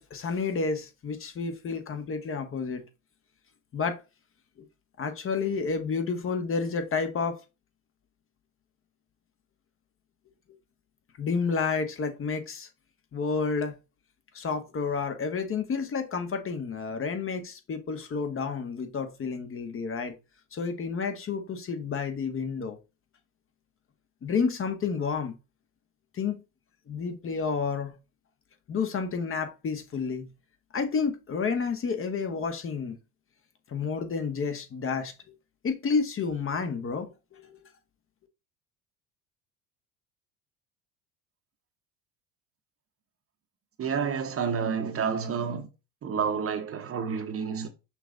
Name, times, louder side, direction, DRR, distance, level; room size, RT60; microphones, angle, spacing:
voice 1, 0.0-2.8 3.7-4.0 5.0-7.4 11.2-12.7 13.1-13.7 14.3-20.1 20.5-22.8 24.2-25.3 26.1-26.4 26.9-27.9 28.7-30.3 30.7-33.0 33.7-35.1 35.6-37.5, left 5 dB, 35° left, 1.1 m, -30 dB
voice 2, 43.8-45.7 46.0-47.7, right 6 dB, 35° right, 0.8 m, -29 dB
5.8 x 2.3 x 3.8 m
hypercardioid pair, 80°, 39 cm